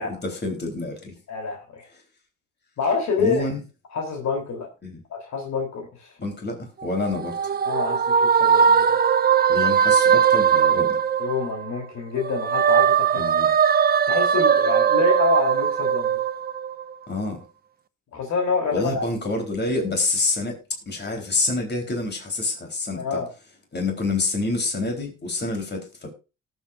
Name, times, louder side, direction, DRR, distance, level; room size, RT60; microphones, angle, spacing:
voice 1, 0.0-1.2 3.2-3.6 4.8-5.0 6.2-7.6 9.5-11.0 13.1-13.6 17.1-17.4 18.7-23.2 23.7-26.1, left 2 dB, 35° left, 3.7 m, -27 dB
voice 2, 1.3-1.9 2.8-3.5 3.9-4.7 5.1-6.2 7.6-9.0 11.2-13.2 14.1-16.1 18.1-19.1 23.0-23.3, left 5 dB, 65° left, 3.5 m, -27 dB
sound 1, 6.8-11.8 12.2-16.9, right 7 dB, 30° right, 0.5 m, -20 dB
18.5 x 8.1 x 2.5 m
cardioid pair, 90°, 30 cm